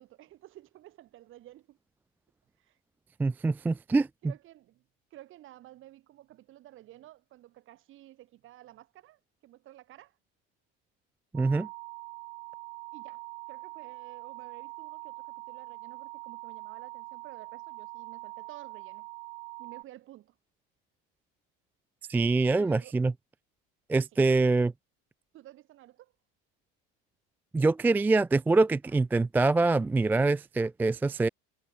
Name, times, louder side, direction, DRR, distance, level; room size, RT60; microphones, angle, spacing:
voice 1, 0.0-1.8 2.6-2.8 4.2-4.8 5.1-10.2 12.9-19.1 19.6-20.3 22.6-22.9 24.1-24.2 25.3-26.1, right 14 dB, 45° right, 3.5 m, -52 dB
voice 2, 3.2-4.1 11.3-11.7 22.1-23.1 23.9-24.7 27.5-31.3, right 3 dB, 5° right, 0.3 m, -24 dB
sound 1, 11.4-19.8, right 27 dB, 80° right, 1.7 m, -44 dB
cardioid pair, 145°, 29 cm